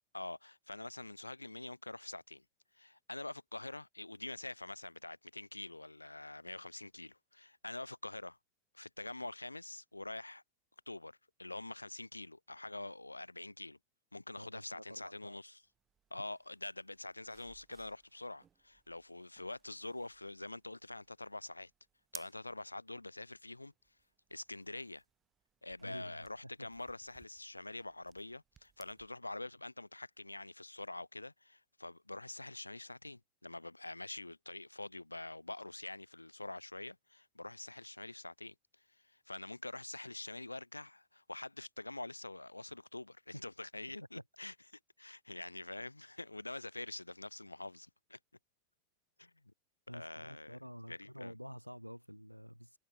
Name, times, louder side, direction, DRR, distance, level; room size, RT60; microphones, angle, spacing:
voice 1, 0.1-2.4 2.7-8.4 8.7-10.4 10.9-13.8 14.1-15.6 16.1-21.7 22.1-23.7 24.3-25.0 25.6-48.2 49.2-49.3 49.9-50.6 50.9-51.3, left 2 dB, 85° left, 1.8 m, -46 dB
voice 2, 14.4-15.4 25.8-26.2 26.4-26.7 49.9-52.8, equal, 90° right, 3.0 m, -49 dB
sound 1, 15.6-29.1, right 8 dB, 20° right, 2.0 m, -61 dB
figure-of-eight pair, 90°, 0 cm